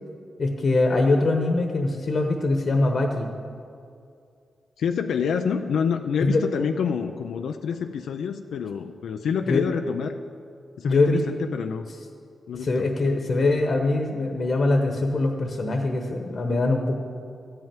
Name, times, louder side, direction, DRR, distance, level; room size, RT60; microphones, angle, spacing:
voice 1, 0.4-3.3 6.2-6.4 9.5-9.6 10.8-11.2 12.5-17.0, left 2 dB, 55° left, 3 dB, 1.1 m, -23 dB
voice 2, 4.8-10.2 10.8-11.8 12.5-12.9, left 7 dB, 85° left, 5 dB, 0.5 m, -27 dB
13.5 x 5.6 x 9.0 m, 2.4 s
cardioid pair, 60°, 0 cm